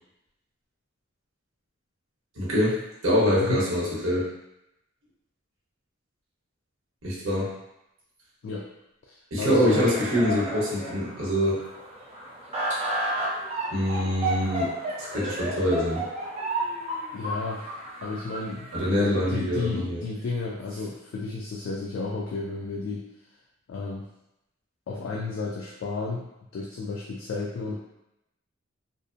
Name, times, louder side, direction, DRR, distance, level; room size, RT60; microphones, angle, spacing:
voice 1, 2.4-4.3 7.0-7.5 9.3-11.6 12.7-12.8 13.7-14.7 15.0-16.0 18.7-20.0, equal, 70° right, -6 dB, 0.9 m, -24 dB
voice 2, 9.1-9.9 17.1-17.6 18.0-23.0 23.7-24.0 24.9-26.3 26.5-27.8, left 3 dB, 65° left, -2 dB, 0.3 m, -32 dB
sound 1, 9.7-18.8, right 1 dB, 30° right, 0.5 m, -32 dB
2.6 x 2.0 x 2.5 m, 0.86 s
head